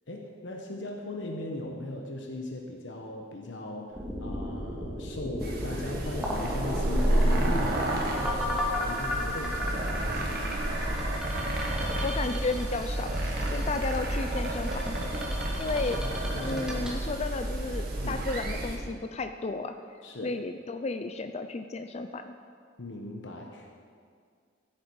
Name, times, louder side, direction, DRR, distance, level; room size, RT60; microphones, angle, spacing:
voice 1, 0.1-3.9 4.2-10.6 15.6-16.9 18.0-18.2 20.0-20.3 22.8-23.7, left 1 dB, 75° left, 1 dB, 1.1 m, -38 dB
sound 1, 3.9-18.0, left 1 dB, 5° right, 1.9 m, -35 dB
sound 2, 5.4-18.8, right 1 dB, 55° right, 1.9 m, -30 dB
voice 2, 12.0-13.2 13.5-15.1 15.6-16.0 16.4-19.8 20.2-22.4, left 3 dB, 35° left, 8 dB, 0.4 m, -33 dB
15.0 x 9.0 x 4.7 m, 2.2 s
head